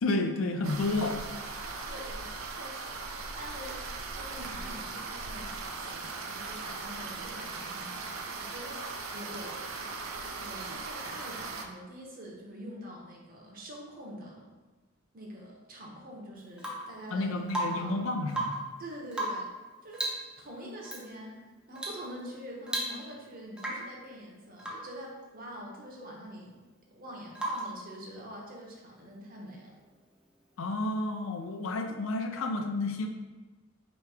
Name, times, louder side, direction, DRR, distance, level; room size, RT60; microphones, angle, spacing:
voice 1, 0.0-1.2 17.1-18.5 30.6-33.1, left 2 dB, 75° left, 5 dB, 0.5 m, -31 dB
sound 1, 0.6-11.7, right 3 dB, 80° right, 0.5 m, -39 dB
voice 2, 1.9-9.9 10.4-14.5 15.1-18.0 18.8-19.5 19.8-20.1 20.4-29.7, equal, 45° right, -2 dB, 0.9 m, -45 dB
Rain / Water tap faucet / Drip, 16.6-17.0 17.5-18.0 18.3-18.7 19.1-19.6 19.9-20.3 20.8-21.0 21.8-22.1 22.3-22.4 22.7-23.2 23.6-24.0 24.6-24.9 27.4-27.8 29.7-29.8, right 1 dB, 5° right, 0.6 m, -35 dB
3.3 x 3.1 x 4.7 m, 1.2 s
head